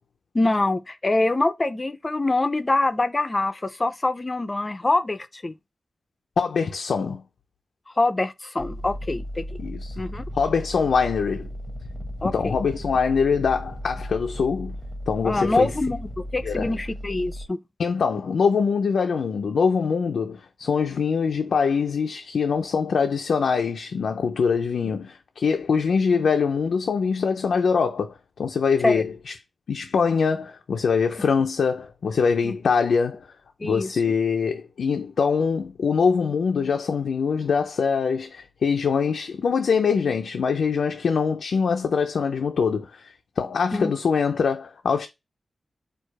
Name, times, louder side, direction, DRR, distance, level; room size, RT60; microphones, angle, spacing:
voice 1, 0.3-5.5 8.0-9.5 10.0-10.2 12.2-12.6 15.2-17.6 28.8-29.0 32.4-32.5 33.6-33.9 43.7-43.9, left 2 dB, 25° left, 0.4 m, -24 dB
voice 2, 6.4-7.2 9.6-9.9 10.3-11.5 12.2-14.8 15.1-15.7 16.4-16.7 17.8-29.3 29.7-33.3 33.6-45.1, left 5 dB, 90° left, 0.4 m, -23 dB
sound 1, 8.6-17.5, equal, 10° right, 0.9 m, -35 dB
4.6 x 2.3 x 4.5 m
wide cardioid pair, 130°, 0 cm